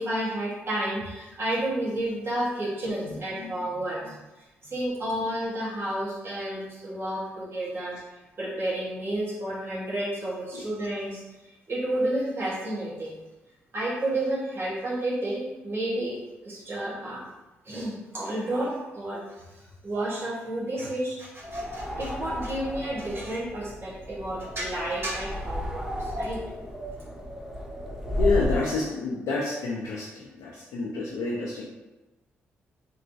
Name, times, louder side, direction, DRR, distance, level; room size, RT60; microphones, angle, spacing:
voice 1, 0.0-4.1 4.6-13.2 13.7-16.2 16.4-17.3 17.6-26.4, right 1 dB, 50° right, -6 dB, 1.2 m, -31 dB
voice 2, 3.1-3.5 10.5-10.7 28.2-31.6, left 3 dB, 75° left, -4 dB, 0.5 m, -29 dB
sound 1, 21.4-28.7, equal, 10° right, 0.7 m, -33 dB
3.1 x 2.9 x 2.7 m, 1.1 s
hypercardioid pair, 50°, 5 cm